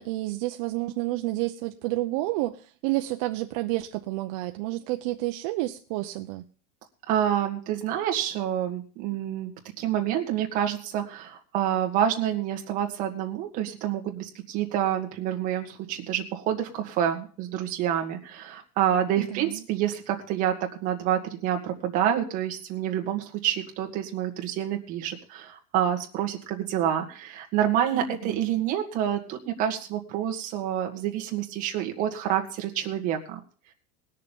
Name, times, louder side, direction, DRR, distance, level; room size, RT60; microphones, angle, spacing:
voice 1, 0.0-6.4 19.2-19.6 27.9-28.4, right 18 dB, 55° right, 0.7 m, -30 dB
voice 2, 7.1-9.5 9.8-20.5 20.8-33.4, right 10 dB, 40° right, 1.9 m, -28 dB
19.5 x 6.7 x 5.4 m
supercardioid pair, 170°, 21 cm